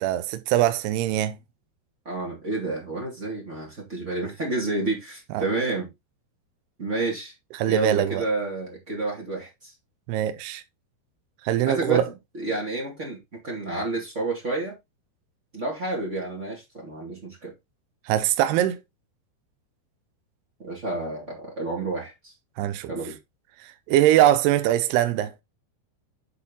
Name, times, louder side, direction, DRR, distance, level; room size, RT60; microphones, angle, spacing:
voice 1, 0.0-1.4 5.3-5.4 7.6-8.3 10.1-10.6 11.4-12.1 18.1-18.8 22.6-22.9 23.9-25.3, right 12 dB, 80° right, 2.5 m, -22 dB
voice 2, 2.0-5.9 6.8-7.3 7.6-9.7 11.6-12.0 12.3-13.2 13.4-14.7 15.5-17.5 20.6-22.3 22.9-23.1, right 2 dB, 35° right, 1.2 m, -30 dB
10.0 x 4.3 x 3.8 m
omnidirectional pair, 5.3 m